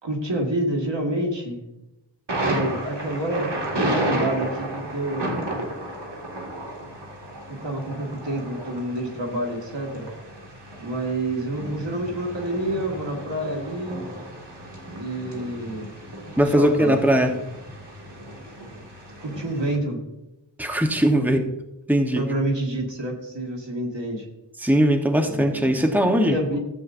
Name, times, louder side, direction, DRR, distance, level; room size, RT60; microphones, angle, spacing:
voice 1, 0.0-1.6 2.4-5.4 7.5-10.1 10.8-14.0 14.9-15.9 16.5-17.0 19.2-20.0 21.2-21.3 22.2-24.3 25.2-25.9 26.2-26.6, right 1 dB, 90° right, 0 dB, 1.9 m, -28 dB
Thunder, 2.3-19.8, right 1 dB, 70° right, 2.1 m, -33 dB
voice 2, 16.4-17.3 20.6-21.4 21.9-22.2 24.6-26.4, equal, 5° right, 4 dB, 1.0 m, -20 dB
14.0 x 8.1 x 2.6 m, 0.96 s
wide cardioid pair, 45°, 43 cm